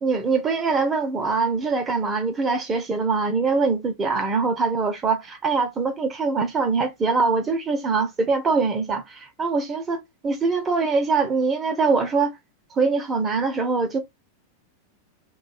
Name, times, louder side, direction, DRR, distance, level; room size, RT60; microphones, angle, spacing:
voice 1, 0.0-12.3 12.8-14.0, right 4 dB, 20° right, 0.7 m, -23 dB
2.6 x 2.3 x 3.9 m
figure-of-eight pair, 90°, 0 cm